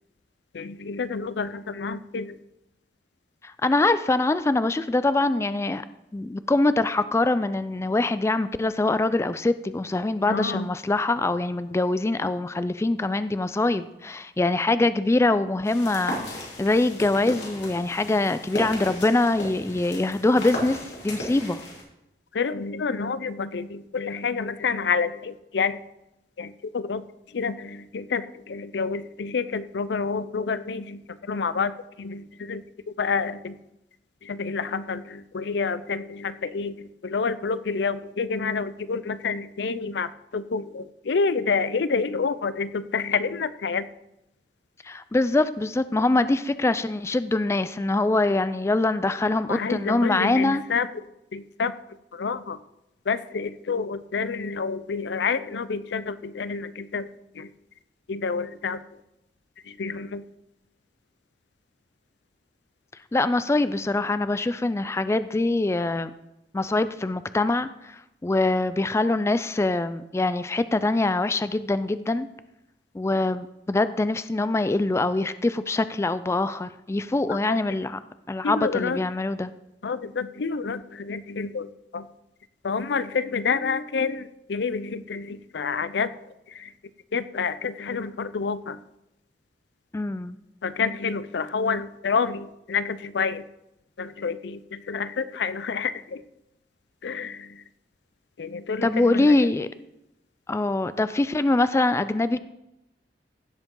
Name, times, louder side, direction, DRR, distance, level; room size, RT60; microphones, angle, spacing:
voice 1, 0.5-2.4 10.3-10.7 22.3-25.8 26.4-27.0 27.3-33.6 34.2-43.9 49.5-50.9 51.3-51.7 52.1-52.6 53.1-57.1 57.3-57.5 58.1-58.8 59.7-60.3 77.3-77.6 78.4-79.0 79.8-82.1 82.6-86.1 86.5-86.7 87.1-88.8 90.6-93.5 94.0-96.2 97.0-97.6 98.4-99.3, left 5 dB, 75° left, 15 dB, 0.5 m, -28 dB
voice 2, 3.4-5.8 6.1-16.2 16.6-21.6 44.8-50.6 63.1-66.1 66.5-72.3 72.9-78.0 78.3-79.5 89.9-90.4 98.8-99.7 100.5-102.4, left 2 dB, 15° left, 13 dB, 0.3 m, -24 dB
sound 1, 15.6-21.8, left 1 dB, 90° left, 3.2 m, -36 dB
16.0 x 7.4 x 3.8 m, 0.89 s
head